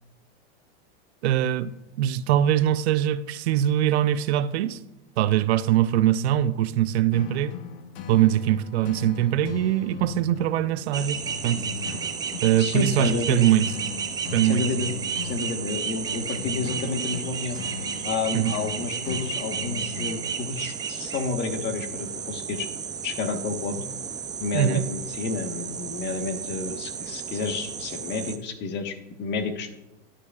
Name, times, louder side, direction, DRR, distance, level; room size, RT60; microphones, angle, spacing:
voice 1, 1.2-4.8 5.2-7.6 8.1-12.0 12.4-13.7 14.3-14.7 18.3-18.5 24.5-24.8, right 11 dB, 80° right, 0.6 m, -22 dB
sound 1, 7.1-20.6, left 8 dB, 65° left, 1.0 m, -39 dB
sound 2, 10.9-28.4, right 7 dB, 15° right, 0.3 m, -33 dB
voice 2, 12.6-13.5 14.4-14.9 15.2-17.6 18.0-22.7 23.0-23.8 24.4-29.7, left 4 dB, 35° left, 1.3 m, -30 dB
11.0 x 10.0 x 2.4 m
supercardioid pair, 135°, 32 cm